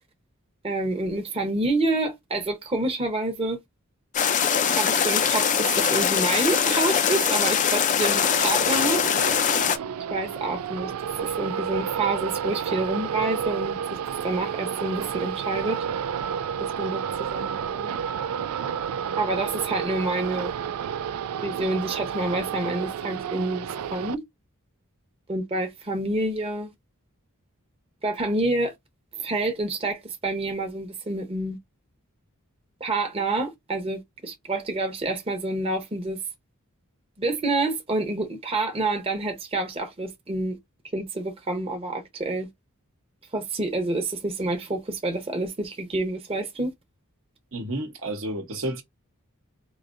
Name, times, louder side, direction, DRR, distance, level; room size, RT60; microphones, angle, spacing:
voice 1, 0.6-3.6 4.7-9.0 9.5-9.6 10.1-10.9 11.2-13.8 14.2-15.8 16.8-18.0 19.2-20.5 21.4-24.2 25.3-26.7 28.0-28.7 29.2-31.6 32.8-36.2 37.2-40.6 40.9-42.5 43.3-46.7, right 2 dB, 25° right, 0.8 m, -28 dB
sound 1, 4.1-9.8, left 7 dB, 35° left, 0.4 m, -22 dB
sound 2, 7.9-24.1, right 8 dB, 85° right, 0.4 m, -31 dB
voice 2, 47.5-48.8, right 1 dB, 65° right, 1.0 m, -31 dB
4.8 x 2.7 x 2.5 m
head